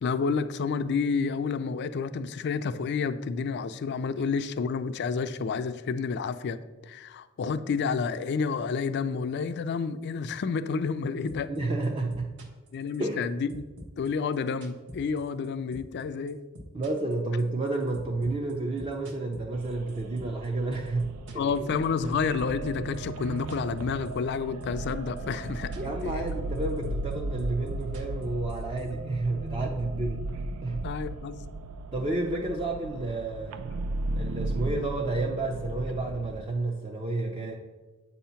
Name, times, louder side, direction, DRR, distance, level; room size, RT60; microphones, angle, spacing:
voice 1, 0.0-6.6 6.8-11.5 12.7-13.6 14.0-16.4 21.4-26.3 30.8-31.4, left 5 dB, 55° left, 11 dB, 0.4 m, -30 dB
sound 1, 11.3-11.6 11.8-13.2 13.5-15.5 15.7-16.0 16.3-20.5 20.7-22.1 22.4-24.3 24.6-24.9 25.2-26.0 26.3-28.9, equal, 60° right, 1.0 m, -46 dB
voice 2, 11.5-12.4 13.0-13.2 16.7-21.5 25.8-30.2 30.6-30.8 31.9-33.7 34.1-37.5, right 2 dB, 25° right, 1 dB, 0.5 m, -30 dB
sound 2, 19.5-36.4, right 2 dB, 90° right, 0.4 m, -36 dB
8.0 x 2.8 x 5.6 m, 1.2 s
head